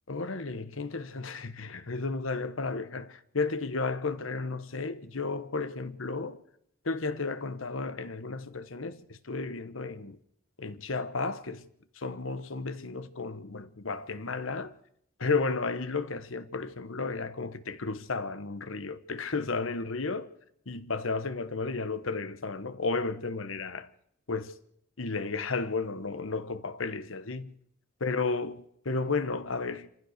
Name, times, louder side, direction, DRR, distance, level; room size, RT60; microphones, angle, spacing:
voice 1, 0.1-6.4 6.8-10.2 10.6-11.7 12.0-14.7 15.2-20.3 20.7-23.9 24.3-24.5 25.0-27.5 28.0-29.9, left 3 dB, 85° left, 1.2 m, -33 dB
26.5 x 15.5 x 6.6 m
head